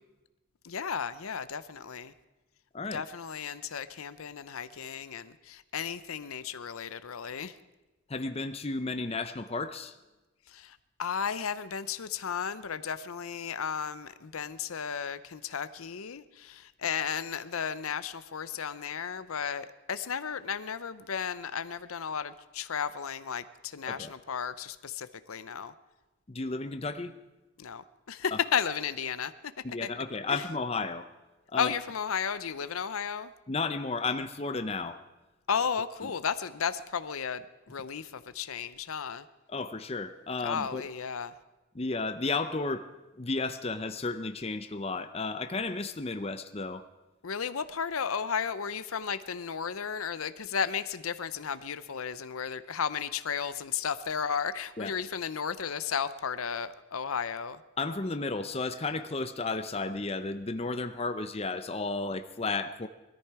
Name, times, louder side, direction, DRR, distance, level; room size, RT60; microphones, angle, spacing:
voice 1, 0.6-2.1 2.9-7.6 10.5-25.7 27.6-29.3 29.8-29.9 30.3-30.4 31.6-33.3 35.5-39.3 40.4-41.3 47.2-57.6, left 7 dB, 80° left, 13 dB, 0.7 m, -34 dB
voice 2, 8.1-9.9 23.9-24.1 26.3-27.1 28.3-28.4 29.6-31.1 31.5-31.7 33.5-35.0 39.5-40.8 41.7-42.9 43.2-46.8 54.8-54.9 57.8-62.9, left 3 dB, 30° left, 9 dB, 0.6 m, -33 dB
20.5 x 13.5 x 4.8 m, 1.1 s
head